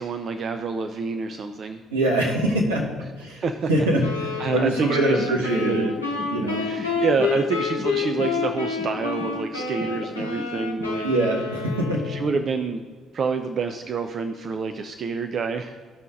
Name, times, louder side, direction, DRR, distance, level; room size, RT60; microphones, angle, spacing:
voice 1, 0.0-1.8 3.3-3.7 4.4-6.0 6.6-11.1 12.0-12.8 13.1-15.8, right 4 dB, 50° right, 7 dB, 0.5 m, -27 dB
voice 2, 1.9-2.8 3.2-3.4 3.7-4.1 4.5-5.9 6.3-6.6 11.0-12.0, right 1 dB, 80° right, -2 dB, 1.2 m, -23 dB
sound 1, 4.0-12.4, left 5 dB, 85° left, 0.7 m, -29 dB
sound 2, 5.0-10.9, left 2 dB, 10° left, 2.0 m, -36 dB
15.0 x 5.6 x 2.5 m, 1.5 s
figure-of-eight pair, 45°, 0 cm